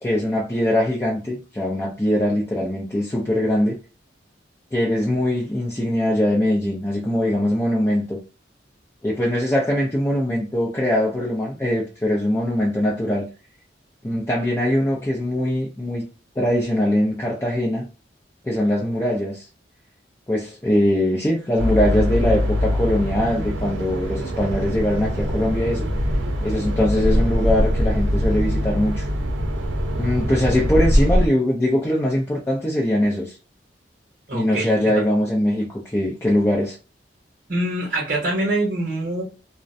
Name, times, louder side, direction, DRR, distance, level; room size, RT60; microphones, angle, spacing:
voice 1, 0.0-3.8 4.7-8.2 9.0-13.3 14.0-16.0 16.4-17.9 18.4-19.5 20.3-25.9 26.4-29.1 30.0-33.4 34.3-36.8, left 1 dB, 15° left, 0.4 m, -22 dB
sound 1, 21.6-31.3, equal, 90° right, 0.6 m, -22 dB
voice 2, 34.3-35.0 37.5-39.2, right 1 dB, 45° right, 0.8 m, -24 dB
2.4 x 2.1 x 2.5 m
head